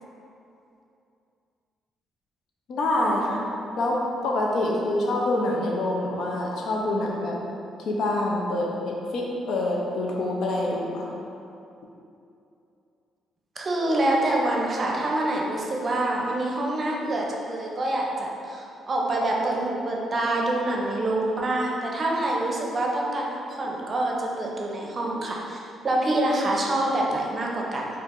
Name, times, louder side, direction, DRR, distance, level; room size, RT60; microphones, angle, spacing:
voice 1, 2.7-3.5 3.8-7.4 7.9-11.1, left 1 dB, 75° left, -2 dB, 0.5 m, -26 dB
voice 2, 13.6-27.9, right 1 dB, 40° right, -2 dB, 0.5 m, -26 dB
4.5 x 2.5 x 2.5 m, 2.7 s
cardioid pair, 90°, 0 cm